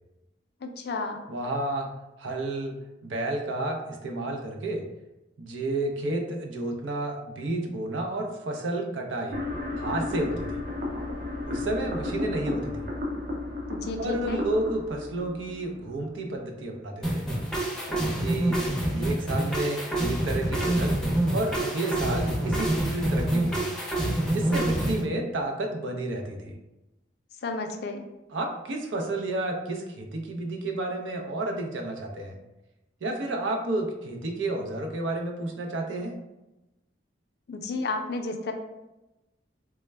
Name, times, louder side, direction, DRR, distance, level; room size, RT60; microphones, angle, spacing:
voice 1, 0.6-1.2 13.7-14.4 27.4-28.0 37.5-38.5, left 3 dB, 60° left, 5 dB, 0.4 m, -32 dB
voice 2, 1.3-1.9 2.2-4.8 5.4-9.4 9.8-10.6 11.5-12.9 14.0-17.2 17.9-18.6 18.9-21.0 21.3-23.7 24.3-26.6 28.3-32.4 33.0-36.2, right 2 dB, 85° right, 2 dB, 0.6 m, -31 dB
sound 1, 9.3-16.3, left 2 dB, 50° right, 0.6 m, -33 dB
sound 2, 17.0-25.0, right 1 dB, 5° left, 0.5 m, -27 dB
3.3 x 2.1 x 3.2 m, 0.99 s
head